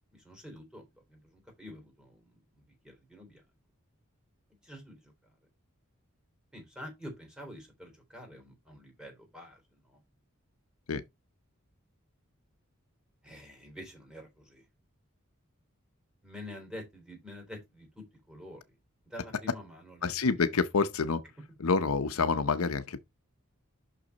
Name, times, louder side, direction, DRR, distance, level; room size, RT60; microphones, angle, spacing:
voice 1, 0.1-2.4 2.8-3.4 4.6-5.1 6.5-9.6 9.9-10.0 13.2-14.6 16.2-18.6 19.1-20.2, left 1 dB, 5° right, 3.5 m, -47 dB
voice 2, 20.0-21.2 21.6-23.0, left 4 dB, 85° left, 0.8 m, -27 dB
6.5 x 6.1 x 4.0 m
head